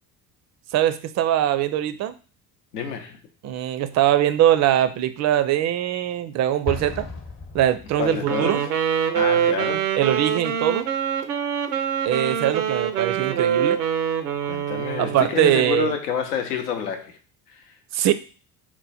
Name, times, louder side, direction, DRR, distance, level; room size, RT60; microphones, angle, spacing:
voice 1, 0.7-2.1 3.4-7.1 7.5-8.6 10.0-10.9 12.0-13.8 15.0-15.9 17.9-18.1, right 12 dB, 40° right, 0.4 m, -22 dB
voice 2, 2.7-3.2 8.0-8.7 9.1-9.9 14.4-17.2 17.5-17.7, left 7 dB, 80° left, 0.7 m, -28 dB
Explosion, 6.7-8.4, left 3 dB, 30° left, 0.8 m, -35 dB
Wind instrument woodwind instrument, 8.2-15.4, right 8 dB, 90° right, 0.6 m, -24 dB
4.4 x 2.1 x 4.0 m
hypercardioid pair, 65°, 46 cm